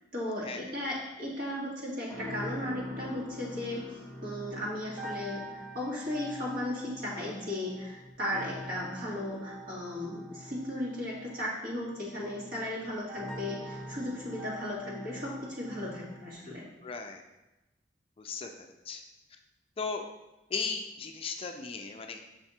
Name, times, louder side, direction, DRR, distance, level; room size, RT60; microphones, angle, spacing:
voice 1, 0.1-16.6, left 1 dB, 55° right, -5 dB, 1.9 m, -36 dB
sound 1, 2.1-16.3, equal, ahead, 1.3 m, -44 dB
voice 2, 16.8-17.2 18.2-19.0 19.8-20.0 20.5-22.2, left 5 dB, 30° left, 4 dB, 0.4 m, -36 dB
6.6 x 3.4 x 4.2 m, 1.0 s
head